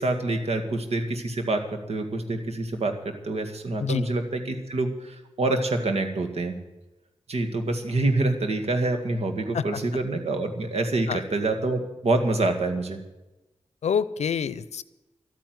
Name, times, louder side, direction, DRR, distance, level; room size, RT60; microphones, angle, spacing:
voice 1, 0.0-6.6 7.3-13.0, right 2 dB, 70° right, 5 dB, 1.9 m, -26 dB
voice 2, 13.8-14.8, left 7 dB, 85° left, 17 dB, 0.6 m, -27 dB
12.5 x 9.1 x 9.5 m, 1.0 s
cardioid pair, 65°, 11 cm